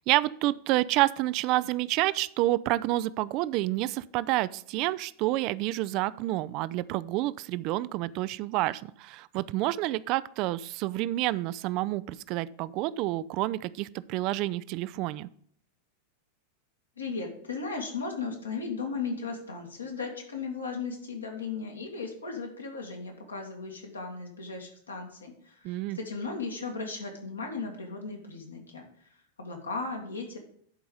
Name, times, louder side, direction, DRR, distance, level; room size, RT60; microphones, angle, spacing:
voice 1, 0.0-15.3 25.6-26.0, right 17 dB, 40° right, 18 dB, 0.3 m, -29 dB
voice 2, 17.0-29.1 29.4-30.4, left 4 dB, 75° left, 1 dB, 2.1 m, -36 dB
11.0 x 4.8 x 5.3 m, 0.65 s
figure-of-eight pair, 90°, 0 cm